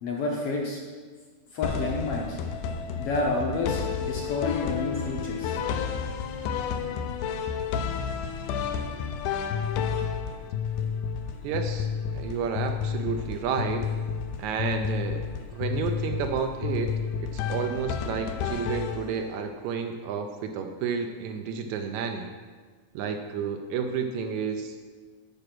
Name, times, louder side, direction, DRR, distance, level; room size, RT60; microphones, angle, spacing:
voice 1, 0.0-0.8 1.5-2.4 3.0-5.6, left 3 dB, 70° left, -1 dB, 1.5 m, -29 dB
sound 1, 1.6-19.4, left 7 dB, 90° left, 2.2 m, -31 dB
voice 2, 11.4-11.9 12.1-13.8 14.4-15.3 15.5-22.3 22.9-24.8, right 6 dB, 80° right, 6 dB, 1.8 m, -31 dB
9.9 x 4.8 x 6.0 m, 1.5 s
omnidirectional pair, 3.6 m